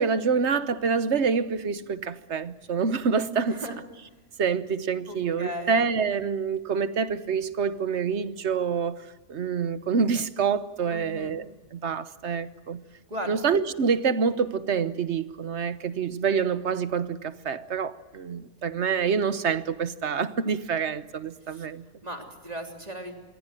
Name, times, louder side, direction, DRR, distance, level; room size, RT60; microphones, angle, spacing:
voice 1, 0.0-3.6 4.4-9.0 9.3-11.4 11.7-12.8 13.3-21.9, right 6 dB, 70° right, 1.3 m, -26 dB
voice 2, 3.5-3.8 5.1-5.8 10.9-11.3 13.1-13.4 21.4-21.7 22.0-23.1, equal, 35° right, 3.5 m, -37 dB
27.0 x 23.0 x 7.7 m
omnidirectional pair, 1.2 m